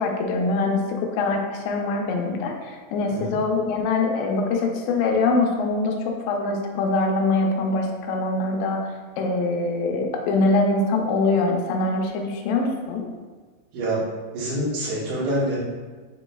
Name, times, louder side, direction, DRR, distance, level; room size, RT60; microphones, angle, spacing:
voice 1, 0.0-8.9 9.2-13.1, left 3 dB, 80° left, 2 dB, 2.6 m, -23 dB
voice 2, 14.3-15.6, right 1 dB, 65° right, -8 dB, 2.1 m, -26 dB
7.2 x 3.1 x 2.3 m, 1.4 s
omnidirectional pair, 5.2 m